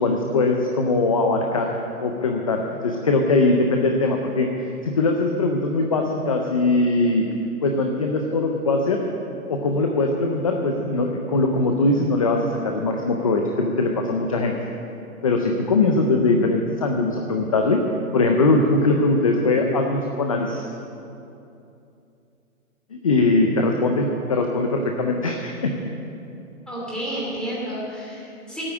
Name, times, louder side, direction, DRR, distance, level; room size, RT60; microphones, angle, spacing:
voice 1, 0.0-1.7 2.0-4.5 4.8-7.3 7.6-9.0 9.5-14.5 15.2-17.8 18.1-20.6 22.9-25.7, left 2 dB, 25° left, 3 dB, 0.5 m, -21 dB
voice 2, 26.7-28.6, right 1 dB, ahead, -7 dB, 2.7 m, -31 dB
12.0 x 8.7 x 8.6 m, 2.7 s
hypercardioid pair, 155°, 44 cm